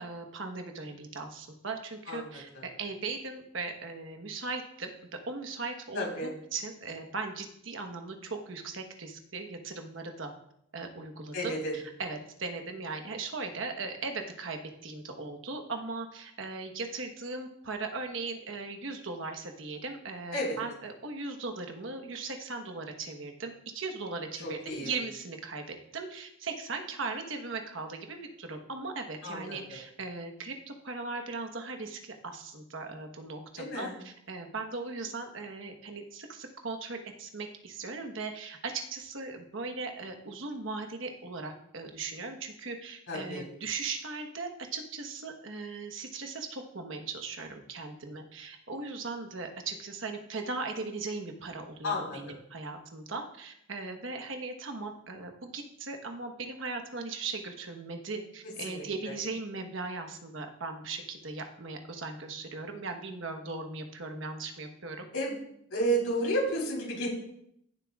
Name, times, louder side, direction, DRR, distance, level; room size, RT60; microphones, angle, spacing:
voice 1, 0.0-4.9 5.3-10.3 10.7-65.0, right 3 dB, 65° right, 5 dB, 1.2 m, -38 dB
voice 2, 2.1-2.6 5.9-6.3 11.3-11.7 20.3-20.6 24.4-24.9 29.2-29.6 33.6-33.9 43.1-43.4 51.8-52.2 58.6-58.8 65.1-65.3 65.7-67.1, right 1 dB, 90° left, -2 dB, 4.2 m, -31 dB
16.0 x 7.5 x 2.4 m, 0.73 s
head